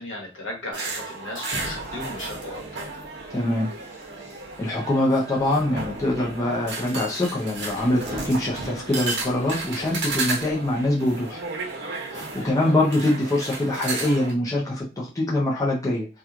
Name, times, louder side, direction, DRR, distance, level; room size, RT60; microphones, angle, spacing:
voice 1, 0.0-2.8 12.4-12.7, left 1 dB, 80° left, -1 dB, 1.1 m, -36 dB
sound 1, 0.7-14.3, right 3 dB, 55° right, 0.9 m, -34 dB
sound 2, 1.5-11.0, equal, 30° right, 0.5 m, -40 dB
voice 2, 3.3-3.7 4.6-11.4 12.1-16.1, left 1 dB, 15° left, -4 dB, 0.5 m, -24 dB
2.9 x 2.3 x 2.4 m, 0.31 s
head